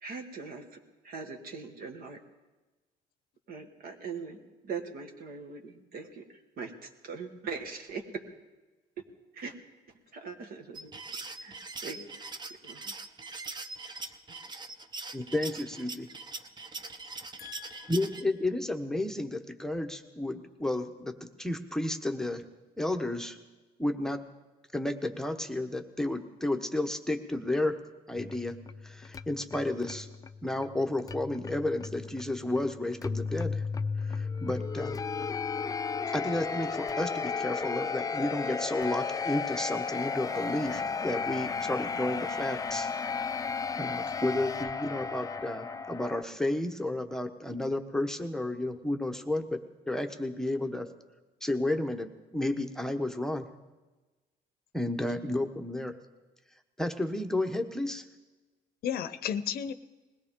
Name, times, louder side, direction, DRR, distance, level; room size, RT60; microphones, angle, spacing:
voice 1, 0.0-2.2 3.5-6.2 6.6-8.1 9.3-9.5 10.1-10.9 11.4-11.6 11.8-12.1 12.5-12.9, right 5 dB, 60° right, 4 dB, 1.8 m, -41 dB
sound 1, 10.7-18.2, right 3 dB, 25° right, 0.8 m, -42 dB
voice 2, 15.1-16.1 17.9-22.4 22.8-23.4 23.8-24.2 24.7-27.8 28.1-28.6 28.8-30.1 30.4-33.6 34.0-35.0 36.1-42.9 43.8-49.6 49.9-50.9 51.4-53.5 54.7-55.9 56.8-58.0, left 1 dB, 5° left, 6 dB, 0.9 m, -32 dB
voice 3, 17.4-17.9 58.8-59.7, left 8 dB, 65° left, 13 dB, 0.7 m, -34 dB
sound 2, 28.2-46.2, left 5 dB, 20° left, 0.4 m, -34 dB
21.0 x 17.0 x 3.7 m, 1.2 s
cardioid pair, 110°, 17 cm